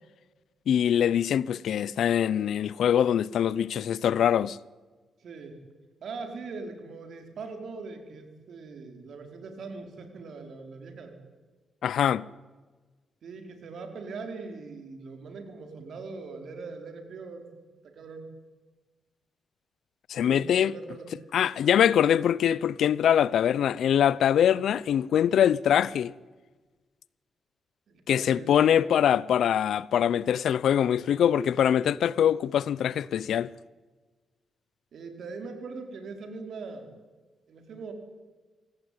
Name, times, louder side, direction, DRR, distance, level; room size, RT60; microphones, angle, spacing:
voice 1, 0.7-4.6 11.8-12.2 20.1-20.7 21.3-26.1 28.1-33.5, left 9 dB, 80° left, 0.7 m, -23 dB
voice 2, 5.2-5.6 6.0-11.1 13.2-17.4 17.8-18.3 20.2-21.1 27.9-28.8 34.9-36.9 37.5-37.9, right 4 dB, 70° right, 4.9 m, -41 dB
26.0 x 17.0 x 9.7 m
cardioid pair, 80°, 0 cm